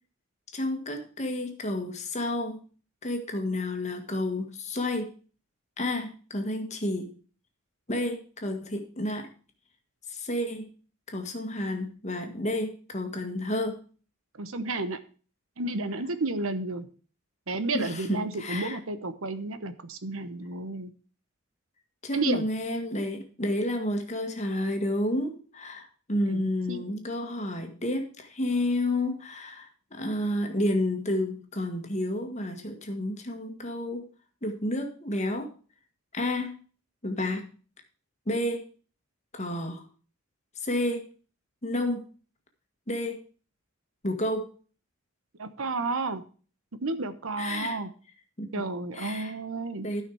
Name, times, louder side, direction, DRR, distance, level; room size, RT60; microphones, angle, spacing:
voice 1, 0.5-2.6 3.0-5.1 5.8-7.1 7.9-9.3 10.1-10.7 11.1-13.8 17.7-18.8 22.0-34.0 34.4-35.5 36.1-36.6 37.0-37.5 38.2-38.7 39.3-39.8 40.6-41.1 41.6-42.0 42.9-43.2 44.0-44.5 47.4-47.8 48.4-48.6 48.9-49.4 49.8-50.0, left 1 dB, 30° left, 4 dB, 1.7 m, -30 dB
voice 2, 14.4-15.0 15.6-16.9 17.5-20.9 22.1-22.4 26.3-26.8 45.4-46.2 46.8-47.9 48.5-49.9, right 3 dB, 75° right, 12 dB, 1.0 m, -31 dB
13.0 x 5.8 x 4.8 m, 0.39 s
head